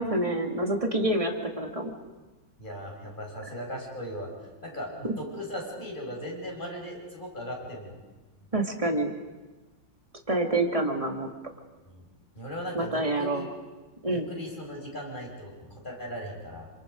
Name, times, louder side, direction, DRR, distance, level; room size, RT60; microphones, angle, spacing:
voice 1, 0.0-1.9 5.0-5.1 8.5-9.1 10.3-11.3 12.7-13.5 14.0-14.3, right 1 dB, 20° right, 3 dB, 2.3 m, -27 dB
voice 2, 2.6-4.3 4.6-8.0 11.9-12.0 12.3-13.4 14.1-16.7, equal, 25° left, 0 dB, 5.9 m, -38 dB
28.0 x 26.0 x 5.2 m, 1.2 s
omnidirectional pair, 2.0 m